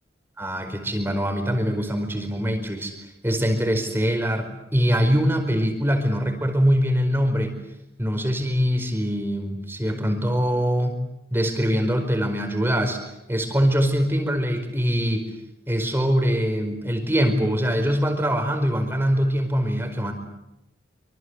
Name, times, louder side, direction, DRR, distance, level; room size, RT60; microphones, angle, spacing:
voice 1, 0.4-7.5 8.0-11.0 11.3-13.0 13.3-15.2 15.7-20.1, equal, 10° right, 5 dB, 4.8 m, -23 dB
26.0 x 25.5 x 8.0 m, 0.89 s
head